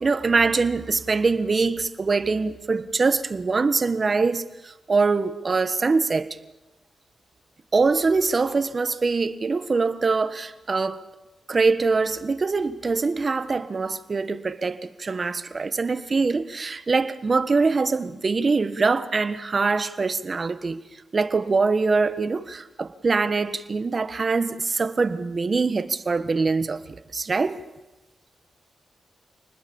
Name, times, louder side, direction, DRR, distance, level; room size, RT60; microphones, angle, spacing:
voice 1, 0.0-6.3 7.7-11.1 11.5-20.8 21.1-26.8 27.1-27.6, right 4 dB, 45° right, 1.5 m, -23 dB
29.0 x 20.0 x 7.2 m
cardioid pair, 65°, 0 cm